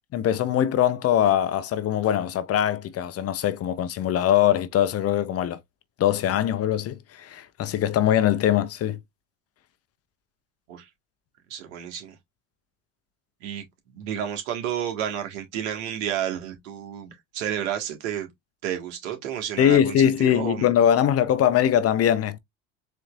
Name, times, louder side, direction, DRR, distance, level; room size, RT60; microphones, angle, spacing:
voice 1, 0.1-5.6 6.0-9.0 19.6-22.4, left 10 dB, 40° left, 0.7 m, -22 dB
voice 2, 11.5-12.1 13.4-13.6 13.9-18.3 18.6-20.7, right 10 dB, 80° right, 1.7 m, -31 dB
4.2 x 3.1 x 2.4 m
supercardioid pair, 95°, 37 cm